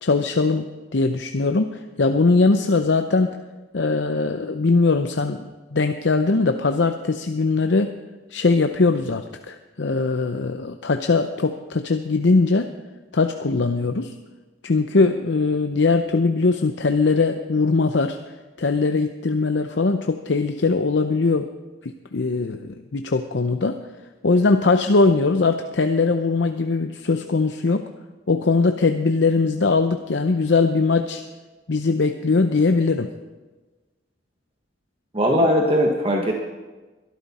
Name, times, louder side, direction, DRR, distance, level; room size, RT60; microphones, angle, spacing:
voice 1, 0.0-3.4 3.7-7.9 8.3-12.7 13.1-14.1 14.6-18.2 18.6-21.5 21.8-23.8 24.2-27.9 28.3-31.2 31.7-33.1, left 3 dB, 75° left, 7 dB, 0.7 m, -21 dB
voice 2, 35.1-36.3, equal, 30° right, 1 dB, 1.3 m, -19 dB
22.0 x 12.5 x 4.2 m, 1.2 s
head